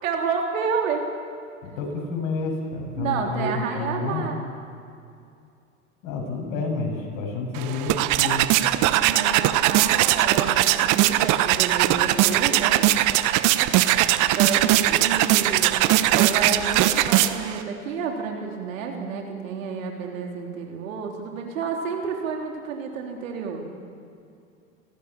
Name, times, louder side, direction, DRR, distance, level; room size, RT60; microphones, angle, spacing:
voice 1, 0.0-1.0 3.0-4.4 8.8-12.8 14.4-15.8 16.1-23.6, right 6 dB, 75° right, 2 dB, 3.8 m, -30 dB
voice 2, 1.6-4.2 6.0-8.5, left 3 dB, 55° left, 1 dB, 7.2 m, -29 dB
sound 1, 7.5-17.6, right 14 dB, 50° right, 1.2 m, -20 dB
27.0 x 17.5 x 7.3 m, 2.5 s
hypercardioid pair, 90°, 40 cm